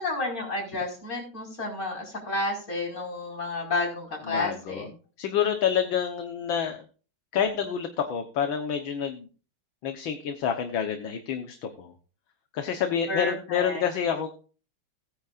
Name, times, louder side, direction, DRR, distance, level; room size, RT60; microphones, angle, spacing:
voice 1, 0.0-4.9 13.1-13.8, left 2 dB, 40° left, -1 dB, 5.6 m, -31 dB
voice 2, 4.3-4.9 5.2-6.8 7.3-9.3 9.8-11.9 12.5-14.3, left 8 dB, 70° left, 6 dB, 1.9 m, -28 dB
18.5 x 9.9 x 2.5 m, 0.37 s
omnidirectional pair, 2.3 m